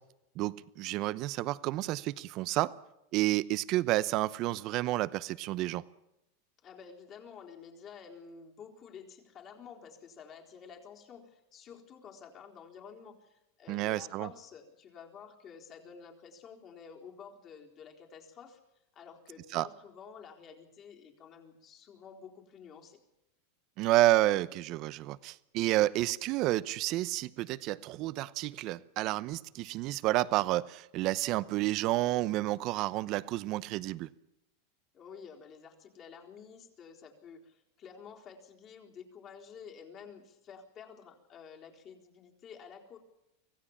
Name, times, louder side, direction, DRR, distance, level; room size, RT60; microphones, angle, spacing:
voice 1, 0.4-2.7 3.1-5.8 13.7-14.3 19.5-19.7 23.8-34.1, right 17 dB, 45° right, 0.8 m, -30 dB
voice 2, 6.6-18.6 18.9-23.0 34.9-43.0, left 6 dB, 35° left, 4.1 m, -51 dB
25.0 x 16.5 x 7.3 m
supercardioid pair, 125°, 0 cm